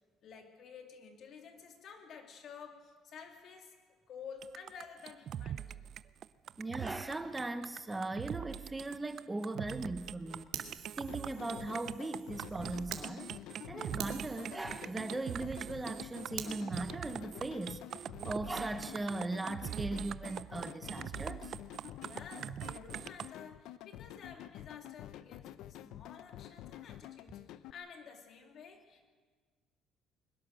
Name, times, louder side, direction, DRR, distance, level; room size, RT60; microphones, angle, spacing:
voice 1, 0.2-3.8 4.1-5.8 22.0-29.1, left 6 dB, 50° left, 3 dB, 3.0 m, -51 dB
sound 1, 4.4-23.3, right 10 dB, 50° right, 0.5 m, -43 dB
voice 2, 6.6-10.4 11.0-13.3 13.7-17.8 18.2-21.5, right 2 dB, 15° right, 9 dB, 0.9 m, -39 dB
Fire, 10.5-13.0 13.5-13.6 14.0-16.5, right 11 dB, 80° right, 2.4 m, -47 dB
sound 2, 11.1-27.7, left 13 dB, 75° left, 0.6 m, -49 dB
22.0 x 20.5 x 6.6 m, 1.5 s
cardioid pair, 135°, 0 cm